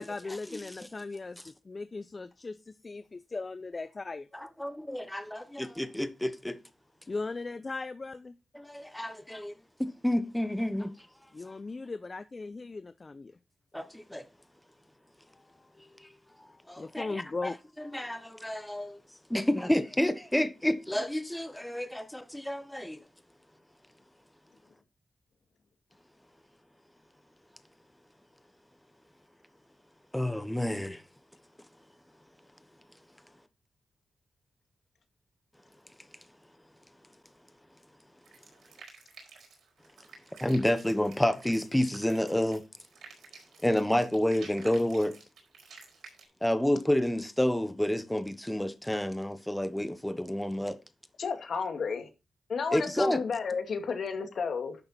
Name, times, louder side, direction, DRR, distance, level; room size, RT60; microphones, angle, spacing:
voice 1, 0.0-4.3 7.1-8.4 11.3-13.3 15.8-18.0, left 3 dB, 40° left, 0.6 m, -39 dB
voice 2, 4.3-6.6 8.5-9.5 9.8-10.9 13.7-14.2 16.7-17.5 17.9-19.0 19.3-23.0 30.1-31.0 40.4-42.6 43.6-45.1 46.4-50.8 52.7-53.2, left 1 dB, 5° left, 1.1 m, -29 dB
sound 1, 38.2-46.2, right 5 dB, 85° right, 4.6 m, -52 dB
voice 3, 51.2-52.1 52.5-54.8, left 5 dB, 70° left, 2.1 m, -32 dB
11.0 x 6.8 x 4.2 m
cardioid pair, 65°, 0 cm